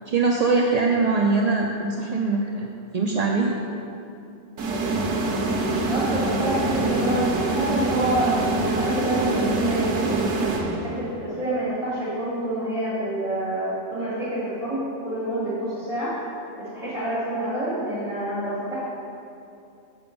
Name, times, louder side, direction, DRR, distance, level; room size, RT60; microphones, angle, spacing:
voice 1, 0.1-3.6, right 3 dB, 60° right, 0 dB, 0.4 m, -22 dB
sound 1, 4.6-11.2, right 2 dB, 85° right, 1.3 m, -24 dB
voice 2, 5.8-10.3 10.8-16.1 16.7-18.9, right 1 dB, 25° right, -10 dB, 2.2 m, -27 dB
7.1 x 6.9 x 5.2 m, 2.7 s
omnidirectional pair, 1.3 m